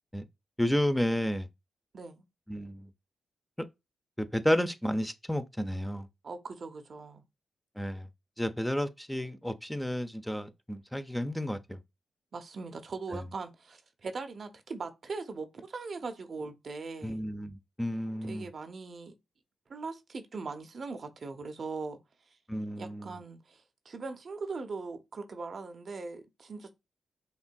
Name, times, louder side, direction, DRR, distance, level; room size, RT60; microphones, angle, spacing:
voice 1, 0.6-1.5 2.5-2.9 4.2-6.1 7.8-8.1 8.4-11.8 17.0-18.5 22.5-23.1, equal, 5° left, 0.6 m, -31 dB
voice 2, 1.9-2.2 6.2-7.2 12.3-17.2 18.2-19.1 19.7-22.0 22.8-26.7, right 4 dB, 55° right, 0.6 m, -40 dB
5.3 x 2.5 x 2.3 m
hypercardioid pair, 40°, 0 cm